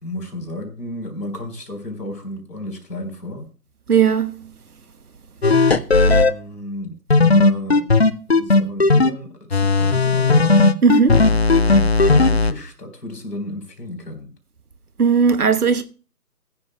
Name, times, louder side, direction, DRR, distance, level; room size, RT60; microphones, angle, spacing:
voice 1, 0.0-3.5 6.1-6.9 7.2-7.9 8.3-10.7 12.1-14.3, left 1 dB, 80° left, 4.2 m, -32 dB
voice 2, 3.9-4.4 10.8-11.2 15.0-15.8, right 6 dB, 65° right, 1.2 m, -16 dB
sound 1, 5.4-6.3 7.1-9.1 9.5-12.5, left 3 dB, 45° left, 0.5 m, -15 dB
19.5 x 9.8 x 2.2 m
figure-of-eight pair, 150°, 48 cm